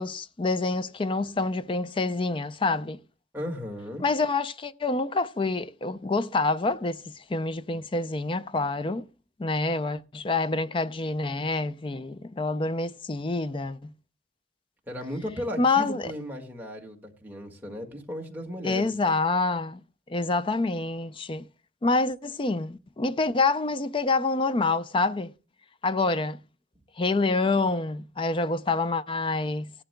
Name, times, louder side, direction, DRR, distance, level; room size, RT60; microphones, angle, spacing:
voice 1, 0.0-3.0 4.0-9.1 9.4-13.9 15.6-16.1 18.6-19.8 20.1-21.5 21.8-25.3 25.8-26.4 27.0-29.7, left 3 dB, 30° left, 0.4 m, -27 dB
voice 2, 3.3-4.0 14.9-18.9, equal, 10° right, 1.7 m, -35 dB
17.5 x 11.5 x 2.2 m
head